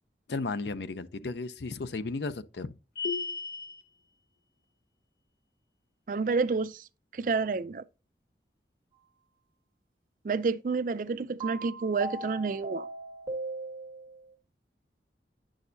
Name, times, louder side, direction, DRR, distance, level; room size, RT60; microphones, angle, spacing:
voice 1, 0.3-2.7, left 3 dB, 75° left, 0.6 m, -34 dB
sound 1, 3.0-3.8, left 5 dB, 55° left, 1.2 m, -33 dB
voice 2, 6.1-6.9 7.1-7.8 10.2-12.9, right 4 dB, 45° right, 0.4 m, -29 dB
sound 2, 11.4-14.2, right 3 dB, 25° right, 1.9 m, -38 dB
9.5 x 6.4 x 2.6 m
head